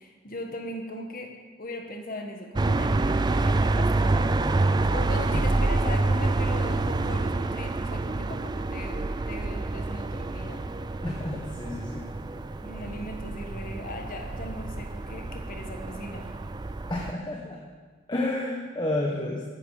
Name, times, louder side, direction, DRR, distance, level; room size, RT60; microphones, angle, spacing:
voice 1, 0.0-4.3 4.9-10.6 12.6-16.3, left 1 dB, 40° left, 3 dB, 1.6 m, -39 dB
sound 1, 2.6-17.1, right 2 dB, 20° right, 0.3 m, -27 dB
voice 2, 11.0-12.1 16.9-17.6 18.1-19.4, left 1 dB, 20° left, -1 dB, 1.1 m, -30 dB
14.5 x 11.0 x 5.0 m, 1.4 s
head